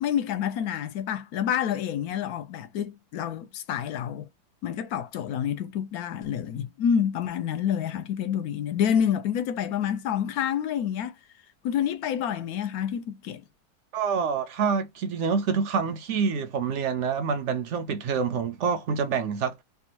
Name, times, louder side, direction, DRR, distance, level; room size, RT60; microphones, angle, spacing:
voice 1, 0.0-4.3 4.6-11.2 11.6-13.4, left 9 dB, 70° left, 1.1 m, -28 dB
voice 2, 13.9-19.6, right 6 dB, 65° right, 0.7 m, -27 dB
3.5 x 2.2 x 2.7 m
omnidirectional pair, 1.7 m